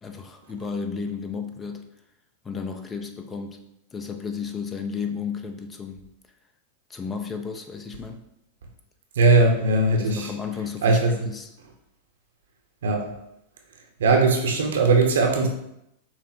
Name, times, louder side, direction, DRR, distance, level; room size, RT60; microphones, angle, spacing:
voice 1, 0.0-1.9 2.4-3.6 3.9-6.1 6.9-8.2 10.0-11.5, left 5 dB, 20° left, 5 dB, 0.6 m, -33 dB
voice 2, 9.1-10.3 10.8-11.2 12.8-13.1 14.0-15.5, right 3 dB, 80° right, 2 dB, 0.9 m, -19 dB
6.0 x 2.1 x 4.3 m, 0.81 s
hypercardioid pair, 105°, 0 cm